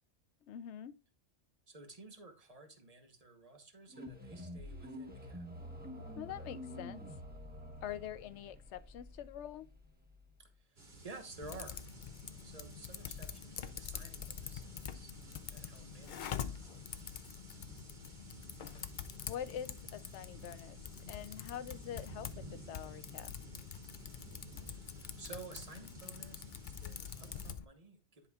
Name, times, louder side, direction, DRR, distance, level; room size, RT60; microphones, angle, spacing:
voice 1, 0.4-0.9 6.2-7.0 7.8-9.7 19.3-20.8 21.1-23.3, left 10 dB, 85° left, 0.9 m, -45 dB
voice 2, 1.7-5.5 10.4-11.8 12.4-15.1 15.5-16.6 24.6-28.3, right 3 dB, 35° right, 1.1 m, -53 dB
sound 1, 3.9-10.6, left 1 dB, 10° right, 1.2 m, -48 dB
sound 2, 10.8-27.5, right 3 dB, 65° right, 2.3 m, -55 dB
Typing, 11.4-27.6, left 9 dB, 55° left, 0.6 m, -46 dB
10.5 x 5.1 x 2.3 m
omnidirectional pair, 1.1 m